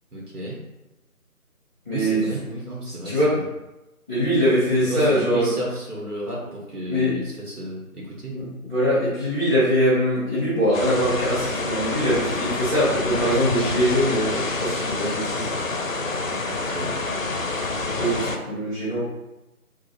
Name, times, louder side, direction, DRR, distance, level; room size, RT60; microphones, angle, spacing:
voice 1, 0.1-0.6 1.9-3.5 4.7-8.3 16.5-17.0, right 1 dB, 85° right, -3 dB, 1.2 m, -33 dB
voice 2, 1.8-2.3 3.0-3.3 4.1-5.5 6.9-7.1 8.3-15.5 18.0-19.0, equal, 15° right, -15 dB, 1.5 m, -22 dB
sound 1, 10.7-18.4, left 3 dB, 60° left, 0.5 m, -27 dB
3.8 x 2.4 x 2.8 m, 0.99 s
figure-of-eight pair, 165°, 45 cm